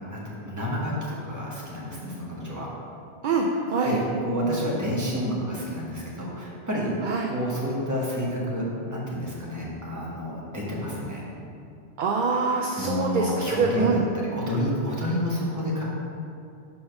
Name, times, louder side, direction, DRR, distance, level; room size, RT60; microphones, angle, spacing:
voice 1, 0.0-2.7 3.8-6.9 7.3-11.3 12.5-15.8, equal, 15° right, -5 dB, 1.2 m, -29 dB
voice 2, 3.2-4.0 7.0-7.3 12.0-14.0, right 4 dB, 60° right, 0 dB, 0.6 m, -24 dB
4.9 x 4.2 x 5.9 m, 2.5 s
omnidirectional pair, 1.1 m